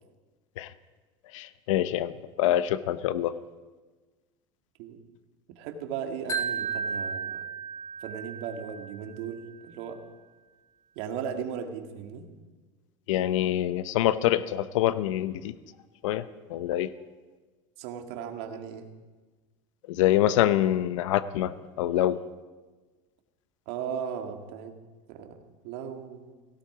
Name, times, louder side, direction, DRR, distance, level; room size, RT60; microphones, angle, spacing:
voice 1, 1.3-3.3 13.1-15.5 16.0-16.9 19.9-22.2, left 13 dB, 85° left, 14 dB, 0.7 m, -25 dB
voice 2, 5.5-7.4 8.0-10.0 11.0-12.3 17.8-18.8 23.7-24.7 25.1-25.4 25.6-26.3, right 7 dB, 65° right, 5 dB, 2.0 m, -37 dB
Wind chime, 6.3-9.4, right 6 dB, 20° left, 2.0 m, -34 dB
17.0 x 16.5 x 5.0 m, 1.3 s
supercardioid pair, 140°, 16 cm